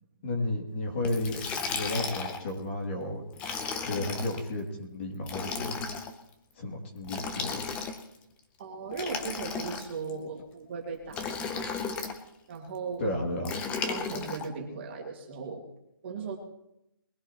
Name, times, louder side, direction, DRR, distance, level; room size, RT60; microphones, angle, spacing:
voice 1, 0.2-1.4 1.7-3.3 3.8-5.8 6.6-7.6 13.0-13.5, left 1 dB, 30° left, 1 dB, 2.6 m, -33 dB
Liquid, 1.0-2.5 3.3-4.4 5.2-6.1 7.0-8.2 8.9-10.1 11.1-12.2 13.4-14.5, left 5 dB, 10° left, 0.7 m, -34 dB
voice 2, 8.6-11.7 12.5-13.1 13.9-15.6 16.0-16.4, right 5 dB, 30° right, 1 dB, 2.1 m, -37 dB
22.0 x 15.0 x 3.0 m, 0.85 s
hypercardioid pair, 165°, 12 cm